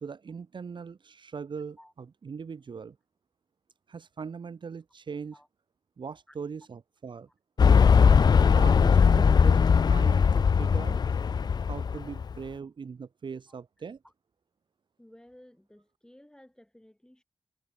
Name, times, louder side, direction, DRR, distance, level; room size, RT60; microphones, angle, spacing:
voice 1, 0.0-3.0 3.9-5.4 6.0-7.3 8.0-8.2 8.5-9.6 9.9-11.0 11.6-14.0, right 5 dB, 55° right, 0.7 m, -40 dB
sound 1, 7.6-12.4, left 6 dB, 45° left, 0.3 m, -20 dB
voice 2, 15.0-17.2, left 1 dB, 5° left, 6.8 m, -55 dB
cardioid pair, 75°, 10 cm